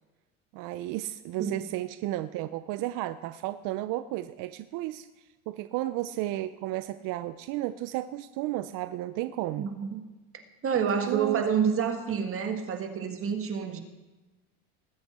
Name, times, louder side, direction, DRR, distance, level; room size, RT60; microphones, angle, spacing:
voice 1, 0.5-5.1 5.5-9.7 10.9-11.4, right 15 dB, 50° right, 12 dB, 0.6 m, -33 dB
voice 2, 9.6-10.0 10.6-13.8, right 7 dB, 35° right, 5 dB, 1.6 m, -28 dB
19.5 x 7.9 x 4.2 m, 1.2 s
supercardioid pair, 110°, 40 cm